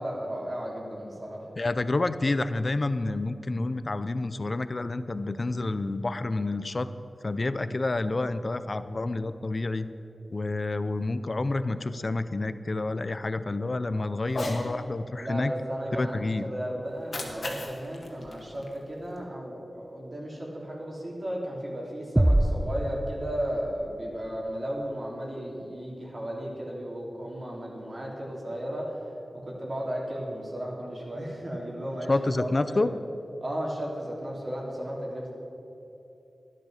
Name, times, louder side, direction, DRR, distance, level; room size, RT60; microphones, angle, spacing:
voice 1, 0.0-1.5 13.9-14.1 15.2-29.0 29.3-32.8 33.4-35.3, equal, 50° right, -3 dB, 3.4 m, -34 dB
voice 2, 1.6-6.9 7.2-9.9 10.3-15.5 15.9-16.4 32.1-32.9, left 2 dB, 50° left, 12 dB, 0.5 m, -29 dB
Cat, 14.2-14.7 16.9-19.2, left 2 dB, 70° left, 1.7 m, -37 dB
sound 1, 22.2-23.9, right 1 dB, 15° right, 0.5 m, -25 dB
12.0 x 9.9 x 6.5 m, 3.0 s
cardioid pair, 50°, 0 cm